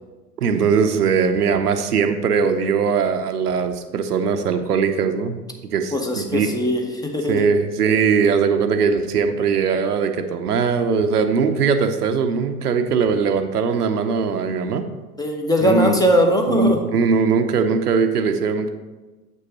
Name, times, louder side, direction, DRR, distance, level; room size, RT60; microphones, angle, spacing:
voice 1, 0.4-6.5 7.3-14.8 15.6-15.9 16.5-18.7, right 5 dB, 80° right, 7 dB, 0.8 m, -20 dB
voice 2, 5.9-7.5 15.2-16.8, equal, 10° left, 2 dB, 0.9 m, -20 dB
7.7 x 5.4 x 4.1 m, 1.2 s
figure-of-eight pair, 85°, 45 cm